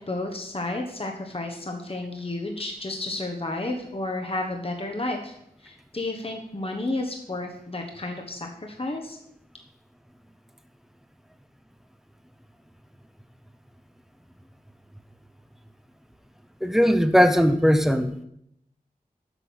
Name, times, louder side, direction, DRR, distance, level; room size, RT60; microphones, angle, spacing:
voice 1, 0.0-9.2, left 2 dB, 40° left, 2 dB, 1.1 m, -32 dB
voice 2, 16.6-18.2, equal, ahead, 10 dB, 0.8 m, -19 dB
8.1 x 5.5 x 6.1 m, 0.76 s
wide cardioid pair, 45°, 15 cm